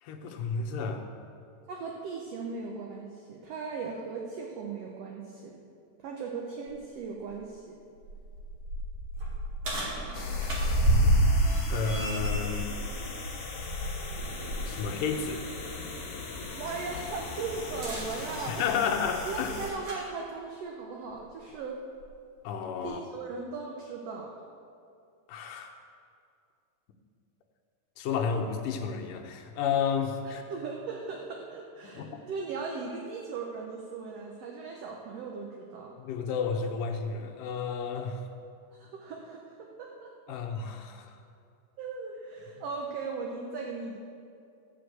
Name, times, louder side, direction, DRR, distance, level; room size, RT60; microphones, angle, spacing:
voice 1, 0.0-1.1 11.7-12.7 14.6-15.5 18.5-19.5 22.4-23.0 25.3-25.8 28.0-30.4 31.8-32.2 36.0-38.3 40.3-41.2, left 6 dB, 80° left, 4 dB, 2.5 m, -32 dB
voice 2, 1.7-5.5 6.0-7.8 16.5-18.8 19.3-21.8 22.8-24.3 30.3-35.9 38.7-40.1 41.8-44.0, right 4 dB, 65° right, 0 dB, 1.6 m, -38 dB
sound 1, 6.7-6.8 7.3-7.4 8.0-14.7 15.1-15.3 17.7-20.1 21.1-21.2 22.0-22.1, right 1 dB, 50° right, 3.0 m, -29 dB
sound 2, 10.1-19.7, left 3 dB, 50° left, 2.3 m, -39 dB
14.5 x 5.1 x 7.8 m, 2.4 s
omnidirectional pair, 3.8 m